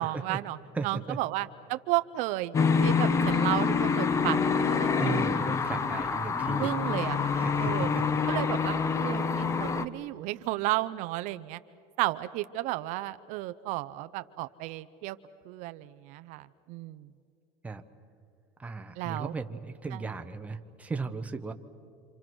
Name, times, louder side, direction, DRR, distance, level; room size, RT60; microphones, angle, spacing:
voice 1, 0.0-0.6 0.8-4.9 6.6-7.2 7.6-7.9 8.3-11.6 12.0-15.2 15.5-17.1 19.0-19.3 19.9-20.0, right 17 dB, 60° right, 13 dB, 0.6 m, -33 dB
voice 2, 0.7-1.2 5.0-6.7 7.3-8.0 17.6-17.8 18.6-21.5, right 4 dB, 10° right, 6 dB, 0.9 m, -36 dB
sound 1, 2.5-9.9, left 5 dB, 20° left, 0.7 m, -26 dB
28.5 x 26.5 x 6.2 m, 2.5 s
cardioid pair, 150°, 14 cm